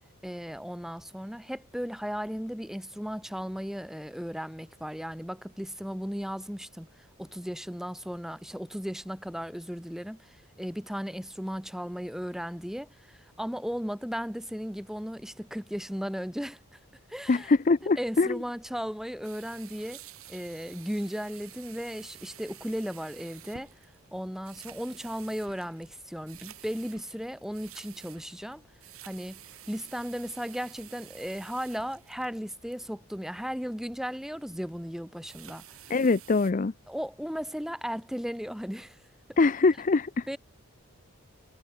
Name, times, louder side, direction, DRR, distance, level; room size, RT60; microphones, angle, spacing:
voice 1, 0.2-6.9 7.2-16.6 17.1-17.5 18.0-20.0 20.3-23.7 24.1-28.6 29.0-35.6 36.9-39.0 40.3-40.4, equal, ahead, 1.4 m, -36 dB
voice 2, 17.3-18.4 35.9-36.7 39.4-40.2, left 3 dB, 35° left, 0.5 m, -23 dB
sound 1, 19.2-32.7 35.1-36.5, right 11 dB, 75° right, 7.8 m, -50 dB
head